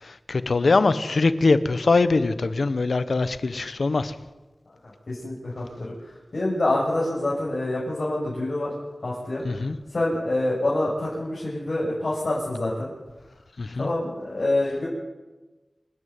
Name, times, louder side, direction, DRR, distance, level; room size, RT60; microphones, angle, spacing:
voice 1, 0.0-4.1 9.4-9.7 13.6-13.9, left 3 dB, 75° left, 13 dB, 1.1 m, -22 dB
voice 2, 5.1-8.7 9.0-9.4 9.9-12.9 13.8-14.9, left 1 dB, 60° left, -7 dB, 6.7 m, -26 dB
27.5 x 10.0 x 9.5 m, 1.2 s
wide cardioid pair, 70°, 0 cm